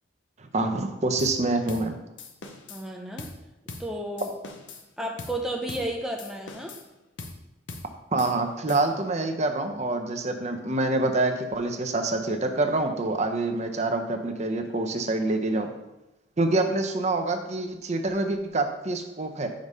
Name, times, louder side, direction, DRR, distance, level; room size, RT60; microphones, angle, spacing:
voice 1, 0.5-2.0 8.1-15.7 16.4-19.5, right 2 dB, 40° right, 5 dB, 0.7 m, -26 dB
sound 1, 1.2-1.4 1.7-1.9 2.2-2.8 3.2-3.4 3.7-3.9 4.2-4.9 5.2-5.4 5.7-5.9 6.2-6.9 7.2-7.4 7.7-7.9 8.2-9.1, left 3 dB, 90° left, 0.8 m, -41 dB
voice 2, 2.7-3.3 3.8-4.3 5.0-6.8, right 1 dB, 5° right, 0 dB, 0.6 m, -32 dB
5.2 x 4.8 x 5.5 m, 0.98 s
head